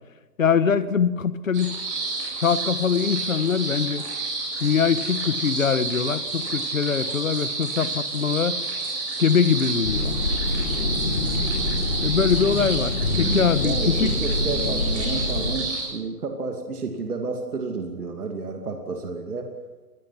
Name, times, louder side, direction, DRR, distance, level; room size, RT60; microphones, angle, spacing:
voice 1, 0.4-1.7 2.4-4.0 4.6-8.6 9.2-10.1 12.0-14.1, left 6 dB, 55° left, 13 dB, 1.5 m, -23 dB
sound 1, 1.5-15.8, right 3 dB, 20° right, 7.9 m, -29 dB
sound 2, 9.9-15.5, left 2 dB, 35° left, 3.9 m, -26 dB
voice 2, 13.6-19.5, right 3 dB, 65° right, 3 dB, 2.7 m, -31 dB
25.5 x 20.5 x 5.9 m, 1.3 s
hypercardioid pair, 175°, 49 cm